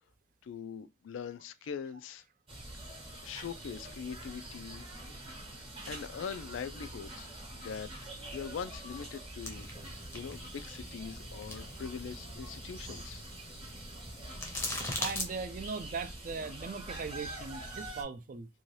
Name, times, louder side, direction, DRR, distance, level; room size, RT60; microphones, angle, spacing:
voice 1, 0.4-2.2 3.2-4.8 5.9-7.9 8.3-9.7 10.1-13.2, left 6 dB, 90° left, 0.3 m, -42 dB
sound 1, 2.5-18.0, right 1 dB, 30° right, 0.8 m, -45 dB
sound 2, 9.4-15.3, left 2 dB, 15° left, 0.6 m, -41 dB
voice 2, 15.0-18.5, right 5 dB, 45° right, 0.4 m, -39 dB
2.7 x 2.2 x 3.1 m
head